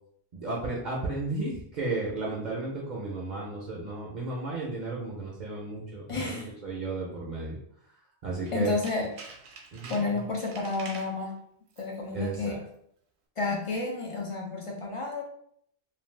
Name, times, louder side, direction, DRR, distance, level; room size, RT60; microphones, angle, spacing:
voice 1, 0.3-7.6 8.2-8.8 9.7-10.0 12.1-12.6, right 3 dB, 55° right, -3 dB, 0.6 m, -34 dB
voice 2, 6.1-6.5 8.5-9.1 9.9-11.3 11.8-12.5 13.4-15.2, left 3 dB, 50° left, -1 dB, 0.4 m, -31 dB
Tools, 8.4-11.2 11.7-12.0 12.3-12.4, right 4 dB, 80° right, 0.9 m, -47 dB
2.5 x 2.2 x 3.2 m, 0.69 s
omnidirectional pair, 1.1 m